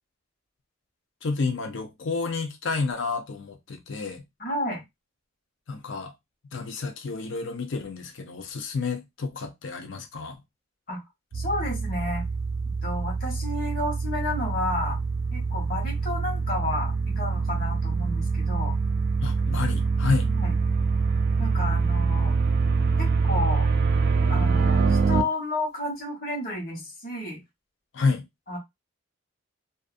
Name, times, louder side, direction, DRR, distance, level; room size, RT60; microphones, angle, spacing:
voice 1, 1.2-4.2 5.7-6.1 6.5-10.4 19.2-20.3 27.9-28.3, left 4 dB, 65° left, 0.5 m, -30 dB
voice 2, 4.4-4.8 10.9-11.0 11.3-12.2 12.8-15.0 15.3-18.7 20.2-20.5 21.4-22.4 23.0-23.7 24.3-27.4 28.5-28.6, left 2 dB, 45° left, 1.1 m, -31 dB
sound 1, 11.3-25.2, right 4 dB, 50° right, 0.3 m, -25 dB
2.5 x 2.4 x 2.4 m
head